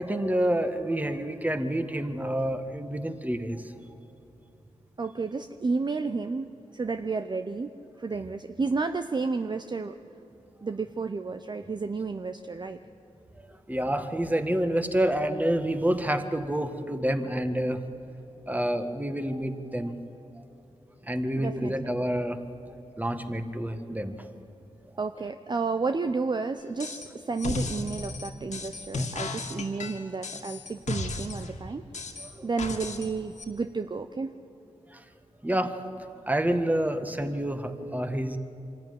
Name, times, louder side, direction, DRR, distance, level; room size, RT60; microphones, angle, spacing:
voice 1, 0.0-3.6 13.4-17.8 18.5-19.9 21.0-22.4 23.0-24.1 32.2-32.5 34.9-35.0 35.4-35.7 36.3-38.4, right 1 dB, 15° right, 8 dB, 1.7 m, -28 dB
voice 2, 5.0-7.7 8.0-10.0 10.6-12.8 21.3-21.7 25.0-31.8 32.4-34.3, right 4 dB, 35° right, 8 dB, 0.7 m, -31 dB
sound 1, 26.8-27.1 27.4-31.5 31.9-33.1 33.4-33.5, left 3 dB, 70° left, 2.2 m, -34 dB
24.5 x 13.5 x 9.7 m, 2.9 s
cardioid pair, 60°, 12 cm